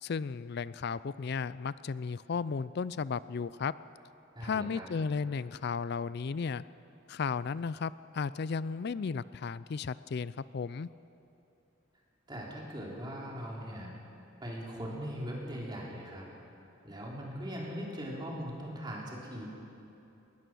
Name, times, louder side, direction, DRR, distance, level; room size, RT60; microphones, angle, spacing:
voice 1, 0.0-3.7 4.4-6.6 7.1-10.9, left 5 dB, 55° left, 17 dB, 0.4 m, -34 dB
voice 2, 4.4-4.9 12.3-13.9 14.4-16.3 16.8-19.5, equal, 20° right, -3 dB, 3.6 m, -40 dB
21.0 x 19.5 x 6.3 m, 2.8 s
head